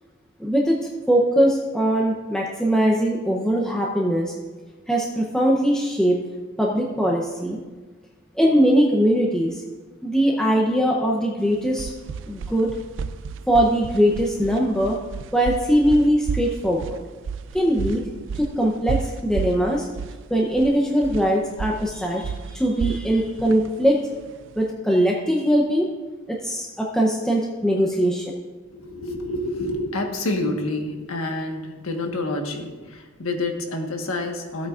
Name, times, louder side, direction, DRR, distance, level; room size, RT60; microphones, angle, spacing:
voice 1, 0.4-0.8 1.1-4.3 4.9-6.2 6.6-7.6 8.4-9.6 10.0-11.9 12.3-12.7 13.5-15.0 15.3-17.0 17.5-18.0 18.3-19.9 20.3-24.0 24.6-25.9 26.3-28.3, equal, 5° left, -2 dB, 0.7 m, -21 dB
sound 1, 11.4-24.7, right 6 dB, 65° right, 0.3 m, -32 dB
voice 2, 28.7-34.7, left 2 dB, 90° left, 3 dB, 1.4 m, -28 dB
16.0 x 8.4 x 2.5 m, 1.3 s
head